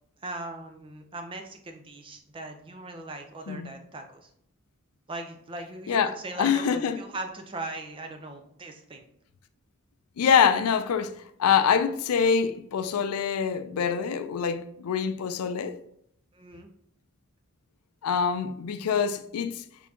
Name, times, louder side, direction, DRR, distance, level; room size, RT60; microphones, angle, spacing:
voice 1, 0.2-4.3 5.1-9.1 16.3-16.7, right 2 dB, 25° right, 0.4 m, -39 dB
voice 2, 5.9-7.0 10.2-15.8 18.0-19.6, left 7 dB, 80° left, 0.4 m, -25 dB
4.3 x 3.5 x 2.7 m
head